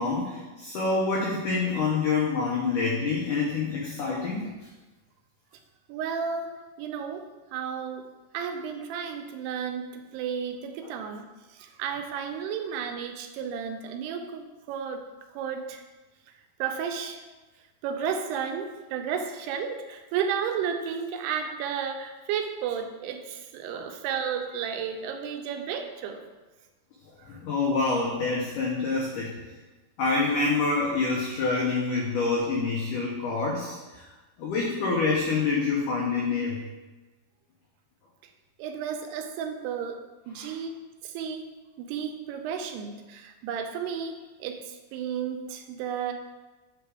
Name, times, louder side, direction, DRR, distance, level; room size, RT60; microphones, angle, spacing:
voice 1, 0.0-4.5 23.7-23.8 27.3-29.3 30.0-34.0 34.4-36.6 40.4-40.5, left 4 dB, 85° left, -3 dB, 1.8 m, -27 dB
voice 2, 5.9-7.3 7.5-8.1 8.3-11.3 11.5-15.1 15.3-15.8 16.6-17.2 17.8-26.2 27.2-27.4 38.6-40.8 41.0-41.4 41.8-46.1, right 7 dB, 80° right, 5 dB, 2.5 m, -33 dB
8.4 x 3.6 x 4.7 m, 1.2 s
omnidirectional pair, 4.8 m